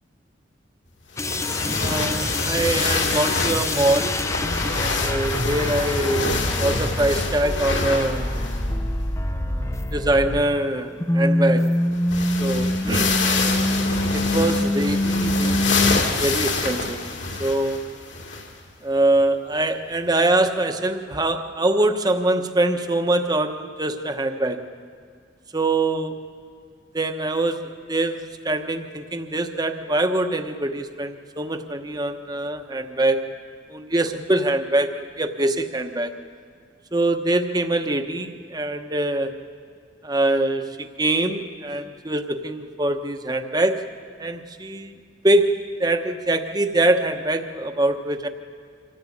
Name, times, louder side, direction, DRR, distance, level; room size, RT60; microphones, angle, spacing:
sound 1, 1.2-8.7 9.0-9.1 11.6-11.7 11.9-18.6 19.2-19.3 20.4-20.5, left 3 dB, 65° left, 2.8 m, -26 dB
sound 2, 1.2-10.7 11.0-16.0, left 1 dB, 15° left, 0.6 m, -25 dB
voice 1, 1.7-4.2 4.6-8.3 9.4-11.7 12.4-13.2 14.1-17.0 17.4-17.9 18.8-24.6 25.5-26.3 26.9-33.3 33.7-36.1 36.9-39.3 40.0-43.9 44.2-45.0 45.2-48.3, right 2 dB, 20° right, 6 dB, 1.0 m, -24 dB
25.0 x 15.0 x 8.6 m, 2.2 s
head